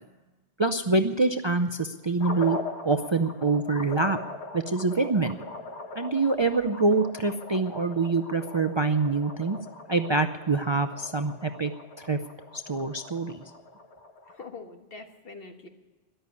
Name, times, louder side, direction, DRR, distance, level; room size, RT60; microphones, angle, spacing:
voice 1, 0.6-2.6 2.8-4.2 4.5-5.4 6.0-9.6 9.9-11.7 12.0-12.2 12.5-13.4, right 3 dB, 35° right, 8 dB, 0.5 m, -25 dB
sound 1, 2.2-14.5, left 2 dB, 85° left, 1.8 m, -41 dB
voice 2, 14.3-15.7, left 4 dB, 60° left, 5 dB, 1.6 m, -44 dB
13.5 x 11.0 x 8.3 m, 1.2 s
omnidirectional pair, 1.1 m